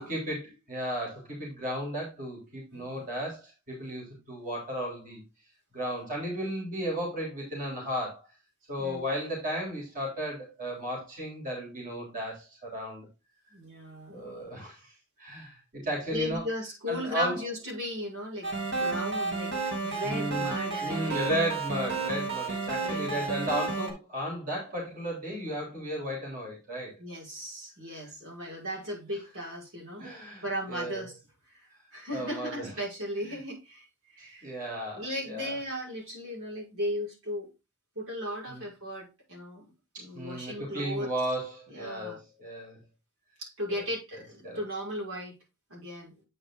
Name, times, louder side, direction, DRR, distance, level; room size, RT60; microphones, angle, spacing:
voice 1, 0.0-5.2 5.7-8.2 8.7-13.1 14.1-14.9 15.2-16.5 16.9-17.4 20.0-20.5 20.8-27.0 30.0-31.0 32.1-32.7 34.4-35.6 38.5-38.6 39.9-42.8 44.1-44.6, equal, 40° right, 3.7 m, -34 dB
voice 2, 2.7-3.0 8.8-9.0 13.5-14.4 16.1-21.2 22.8-23.3 27.0-30.1 30.4-31.1 31.5-34.5 34.9-37.5 38.0-39.7 40.0-41.1 41.7-42.2 43.4-45.4 45.7-46.2, equal, 85° right, 5.5 m, -37 dB
sound 1, 18.4-23.9, right 4 dB, 55° right, 2.6 m, -32 dB
8.6 x 5.1 x 3.8 m
head